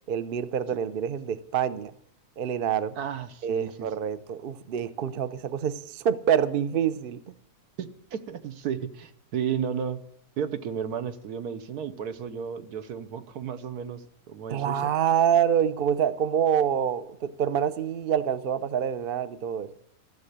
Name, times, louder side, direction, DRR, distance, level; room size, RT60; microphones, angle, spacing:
voice 1, 0.1-1.9 2.4-3.0 3.4-7.3 14.5-19.7, right 8 dB, 55° right, 0.6 m, -26 dB
voice 2, 3.0-3.9 7.8-10.0 10.4-14.9, right 8 dB, 75° right, 1.4 m, -33 dB
14.5 x 6.9 x 9.8 m
omnidirectional pair, 1.7 m